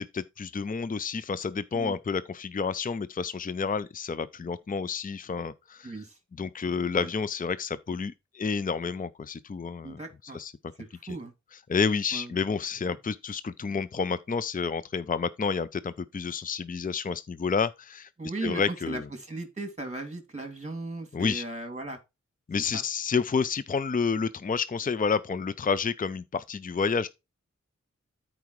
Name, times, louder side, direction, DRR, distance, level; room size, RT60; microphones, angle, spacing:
voice 1, 0.0-5.9 6.4-10.0 10.3-10.5 11.7-18.1 18.4-19.0 21.1-21.4 22.5-27.1, left 5 dB, 30° left, 0.5 m, -29 dB
voice 2, 5.8-6.2 6.9-7.1 9.8-10.4 10.8-11.3 12.1-12.4 18.2-22.0 22.7-22.8, right 2 dB, 25° right, 2.5 m, -37 dB
13.0 x 4.8 x 3.1 m
wide cardioid pair, 65°, 29 cm